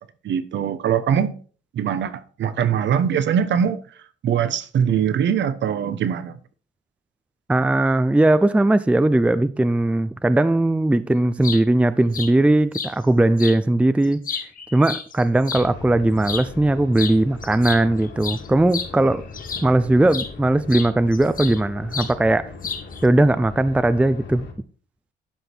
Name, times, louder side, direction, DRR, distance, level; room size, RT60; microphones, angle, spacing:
voice 1, 0.2-1.3 1.7-3.8 4.2-6.4, right 8 dB, 65° right, 1.0 m, -22 dB
voice 2, 7.5-14.2 14.7-19.2 19.6-22.5 23.0-24.5, right 1 dB, 5° right, 0.5 m, -19 dB
sound 1, 11.2-11.6 12.1-12.3 12.7-12.9 13.4-13.6 14.0-15.7 16.2-16.5 17.0-17.2 17.4-19.7 20.1-20.3 20.7-21.6 21.9-22.1 22.6-23.0, left 6 dB, 45° left, 1.4 m, -31 dB
sound 2, 15.5-24.5, left 4 dB, 70° left, 3.1 m, -39 dB
12.0 x 5.2 x 4.4 m
cardioid pair, 90°, 20 cm